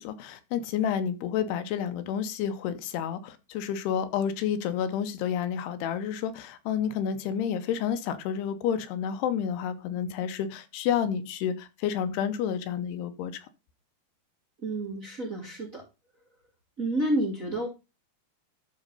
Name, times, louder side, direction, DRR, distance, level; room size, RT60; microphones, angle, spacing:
voice 1, 0.0-13.5, left 8 dB, 85° left, 2.9 m, -30 dB
voice 2, 14.6-15.8 16.8-17.7, right 1 dB, 30° right, 1.9 m, -29 dB
12.0 x 4.1 x 5.4 m
omnidirectional pair, 4.6 m